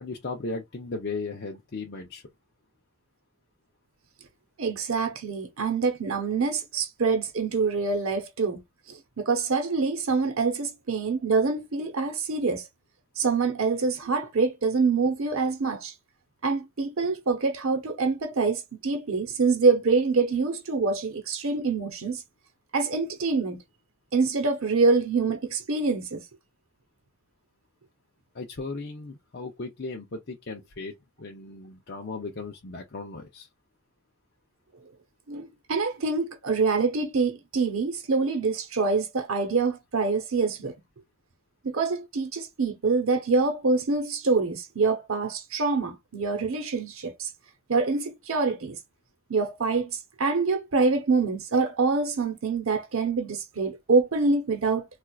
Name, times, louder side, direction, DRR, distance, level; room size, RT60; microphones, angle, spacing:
voice 1, 0.0-2.2 28.3-33.5, left 3 dB, 50° left, 0.6 m, -36 dB
voice 2, 4.6-8.6 8.9-12.6 13.2-15.9 16.4-22.2 22.7-23.6 24.1-26.2 35.3-40.7 41.6-47.3 47.7-48.7 49.3-54.9, right 4 dB, 85° right, 0.9 m, -25 dB
4.3 x 2.4 x 2.3 m
head